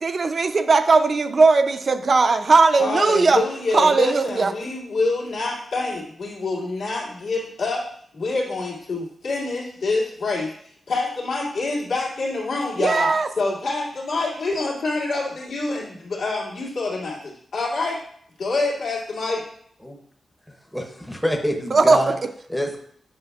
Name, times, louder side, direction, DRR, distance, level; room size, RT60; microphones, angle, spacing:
voice 1, 0.0-3.4 3.7-4.5 12.8-13.3 21.7-22.1, right 4 dB, 40° right, 8 dB, 0.4 m, -18 dB
voice 2, 2.8-7.8 8.1-10.5 10.9-13.1 13.4-18.0 18.4-19.4, left 3 dB, 75° left, -5 dB, 2.1 m, -26 dB
voice 3, 20.5-22.2 22.5-22.8, equal, 5° left, 2 dB, 0.6 m, -26 dB
7.7 x 5.7 x 2.3 m, 0.64 s
wide cardioid pair, 155°, 0 cm